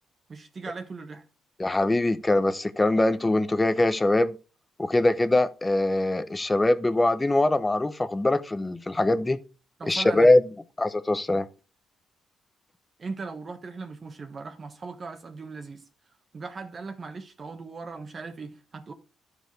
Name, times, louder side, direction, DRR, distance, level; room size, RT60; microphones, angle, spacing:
voice 1, 0.3-1.2 9.8-10.3 13.0-15.8 16.3-18.9, right 4 dB, 40° right, 1.2 m, -38 dB
voice 2, 1.6-4.3 4.8-9.4 9.9-10.4 10.8-11.5, left 2 dB, 15° left, 0.8 m, -22 dB
12.5 x 4.9 x 4.6 m
cardioid pair, 90°, 0 cm